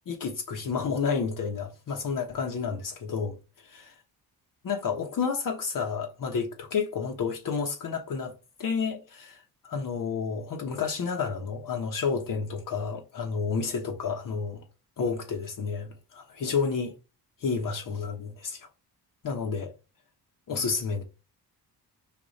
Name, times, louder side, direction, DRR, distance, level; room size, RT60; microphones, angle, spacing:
voice 1, 0.1-3.4 3.6-3.9 4.6-8.3 8.6-14.6 15.0-16.9 17.4-18.7 19.2-19.7 20.5-21.0, left 5 dB, 55° left, 1.0 m, -30 dB
5.0 x 2.5 x 4.0 m
cardioid pair, 110°, 39 cm